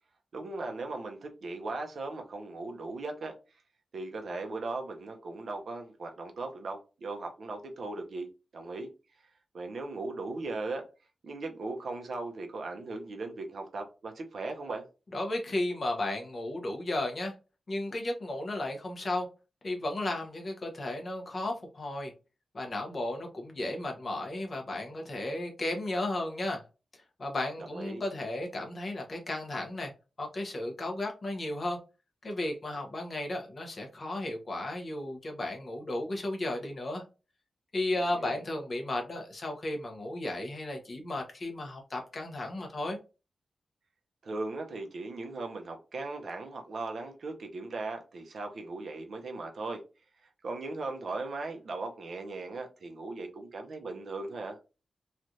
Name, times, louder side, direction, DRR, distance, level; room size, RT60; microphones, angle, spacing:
voice 1, 0.3-3.4 3.9-8.9 9.5-10.9 11.2-14.9 27.6-28.0 38.0-38.4 44.2-49.8 50.2-54.6, right 3 dB, 65° right, 0.7 m, -38 dB
voice 2, 15.1-17.3 17.7-19.3 19.6-22.1 22.5-26.6 27.2-29.9 30.2-31.8 32.2-37.0 37.7-43.0, left 1 dB, 35° left, 0.8 m, -34 dB
3.2 x 2.4 x 2.7 m
wide cardioid pair, 180°, 0 cm